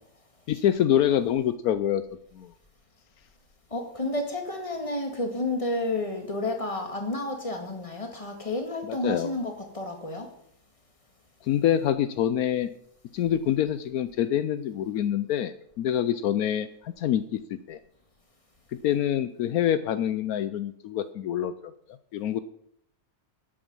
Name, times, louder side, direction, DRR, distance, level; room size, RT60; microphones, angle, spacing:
voice 1, 0.5-2.0 2.3-2.5 8.9-9.3 11.4-12.7 13.1-17.4 17.7-17.8 18.8-21.7 22.1-22.4, left 10 dB, 80° left, 13 dB, 1.1 m, -26 dB
voice 2, 3.7-10.3, left 2 dB, 20° left, 3 dB, 2.1 m, -31 dB
12.0 x 8.8 x 5.4 m, 0.73 s
omnidirectional pair, 1.6 m